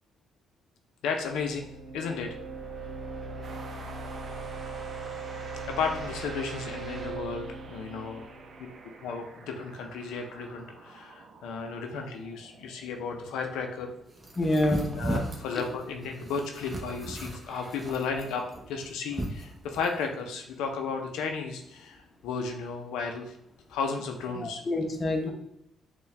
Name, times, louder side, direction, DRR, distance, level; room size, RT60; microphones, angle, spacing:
voice 1, 1.0-2.4 5.7-8.2 9.0-13.9 15.0-23.3 23.7-24.6 25.2-25.3, left 5 dB, 90° left, 4 dB, 0.4 m, -34 dB
sound 1, 1.2-9.0, right 3 dB, 40° right, 1.4 m, -39 dB
sound 2, 3.4-15.0, right 4 dB, 55° right, 0.5 m, -50 dB
sound 3, 14.2-20.0, right 1 dB, 20° right, 0.8 m, -36 dB
voice 2, 14.3-14.9 24.4-25.3, left 1 dB, 35° left, 2 dB, 0.7 m, -27 dB
4.5 x 2.2 x 3.2 m, 0.78 s
cardioid pair, 90°, 0 cm